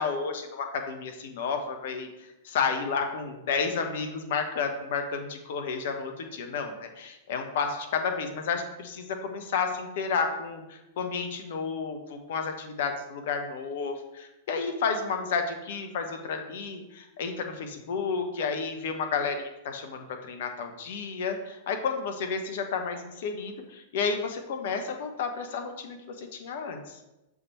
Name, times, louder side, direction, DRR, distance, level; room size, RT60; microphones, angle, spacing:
voice 1, 0.0-27.0, left 5 dB, 60° left, 6 dB, 0.9 m, -31 dB
6.7 x 3.5 x 4.2 m, 0.97 s
figure-of-eight pair, 95°, 0 cm